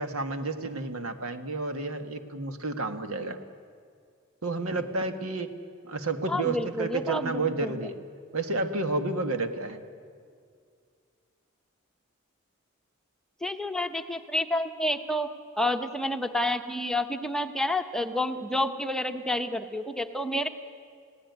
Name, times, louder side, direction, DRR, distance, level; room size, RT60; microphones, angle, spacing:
voice 1, 0.0-3.4 4.4-5.5 5.8-8.0 8.3-9.8, right 3 dB, 85° right, 7 dB, 1.7 m, -31 dB
voice 2, 6.3-7.9 13.4-15.3 15.6-20.5, left 1 dB, 5° left, 6 dB, 0.9 m, -29 dB
30.0 x 17.0 x 9.5 m, 2.2 s
head